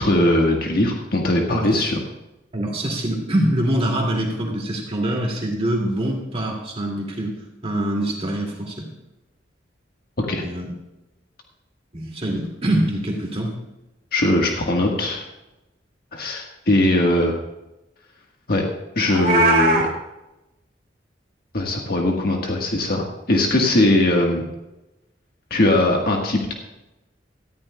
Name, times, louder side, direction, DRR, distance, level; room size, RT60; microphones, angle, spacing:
voice 1, 0.0-2.0 10.2-10.4 14.1-15.2 16.1-17.3 18.5-18.6 19.0-19.8 21.5-24.4 25.5-26.5, left 1 dB, 55° left, 0 dB, 1.4 m, -20 dB
voice 2, 1.5-1.9 2.5-7.3 7.6-8.9 10.4-10.7 11.9-13.6, right 1 dB, 35° right, 0 dB, 2.2 m, -24 dB
Meow, 19.1-19.9, right 1 dB, 55° right, 2.1 m, -18 dB
18.5 x 14.0 x 2.2 m, 0.97 s
head